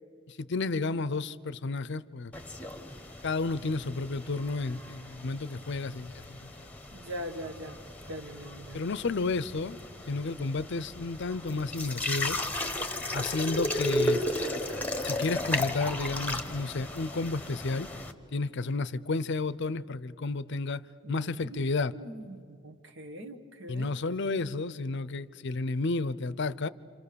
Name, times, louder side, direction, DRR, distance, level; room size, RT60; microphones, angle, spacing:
voice 1, 0.3-2.3 3.2-6.7 8.7-9.8 10.1-12.4 13.1-14.2 15.0-17.9 18.3-20.8 21.1-22.0 23.7-26.7, left 3 dB, 60° left, 18 dB, 0.6 m, -31 dB
sound 1, 2.3-18.1, left 1 dB, 5° left, 1.1 m, -35 dB
voice 2, 6.9-7.8 8.1-8.8 21.0-21.6 21.9-23.9, equal, 65° right, 8 dB, 1.6 m, -41 dB
29.5 x 27.0 x 6.9 m, 2.4 s
head